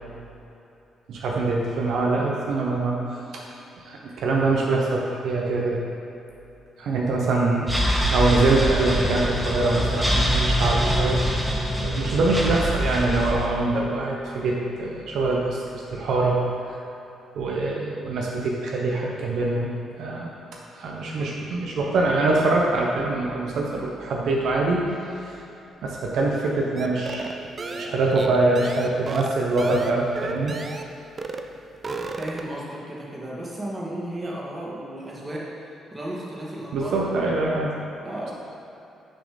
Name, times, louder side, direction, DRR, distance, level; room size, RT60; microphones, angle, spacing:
voice 1, 1.1-3.0 3.3-3.4 3.8-5.8 6.8-7.7 8.1-11.2 11.8-16.4 16.7-16.8 17.4-20.3 20.7-25.3 25.8-27.2 27.7-30.5 36.7-37.7, right 2 dB, 75° right, -2 dB, 0.7 m, -24 dB
sound 1, 7.7-13.5, equal, 5° right, 0.9 m, -24 dB
sound 2, 26.8-30.9 31.2-31.5 31.7-32.6, right 3 dB, 35° right, 0.4 m, -33 dB
voice 2, 32.2-37.1 38.0-38.3, right 1 dB, 20° right, -4 dB, 1.5 m, -34 dB
6.2 x 4.2 x 5.1 m, 2.9 s
cardioid pair, 90°, 0 cm